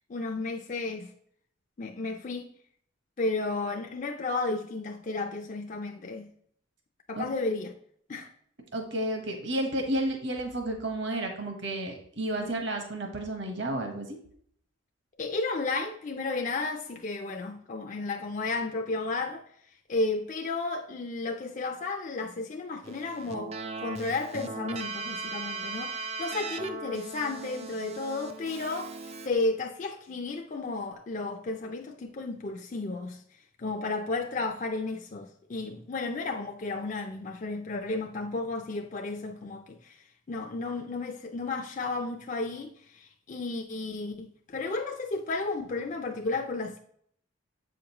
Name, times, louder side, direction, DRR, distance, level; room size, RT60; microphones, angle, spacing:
voice 1, 0.1-1.1 1.8-2.5 3.2-6.3 7.1-7.7 8.1-8.3 12.4-12.6 15.2-19.4 19.9-33.2 33.6-46.8, left 3 dB, 40° left, 0.4 m, -33 dB
voice 2, 8.7-14.2, right 1 dB, 60° right, 1.1 m, -31 dB
Keyboard (musical), 22.8-29.3, right 3 dB, 30° right, 0.3 m, -38 dB
7.5 x 5.1 x 2.9 m
head